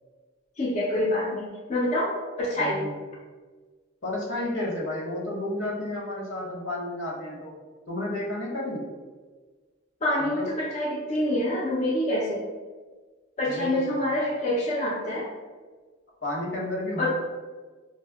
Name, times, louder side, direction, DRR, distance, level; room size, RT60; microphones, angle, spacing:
voice 1, 0.6-2.8 10.0-12.4 13.4-15.3 17.0-17.1, left 1 dB, 35° left, -4 dB, 0.4 m, -26 dB
voice 2, 2.6-2.9 4.0-7.5 7.9-8.8 10.2-10.5 13.5-14.0 16.2-17.1, left 1 dB, 75° left, -3 dB, 0.9 m, -31 dB
4.8 x 2.0 x 2.2 m, 1.4 s
head